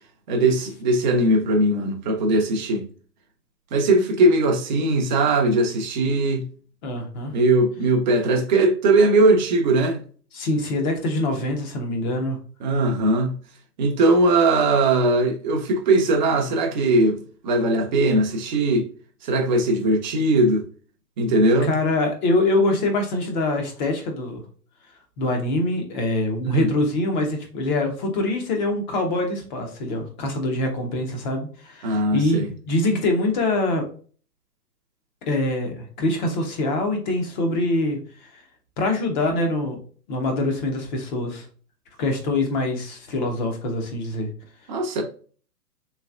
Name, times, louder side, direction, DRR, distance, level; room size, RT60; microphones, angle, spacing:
voice 1, 0.3-2.9 3.7-6.5 7.3-10.0 12.6-13.4 13.8-18.9 19.2-20.6 21.2-21.7 26.4-26.7 31.8-32.5 44.7-45.0, right 2 dB, 30° right, 0.6 m, -20 dB
voice 2, 6.8-7.3 10.3-12.4 21.6-24.4 25.2-33.8 35.3-38.4 38.8-39.8 40.1-41.4 42.0-44.3, left 2 dB, 30° left, 0.9 m, -24 dB
3.3 x 3.2 x 2.4 m
hypercardioid pair, 135°, 49 cm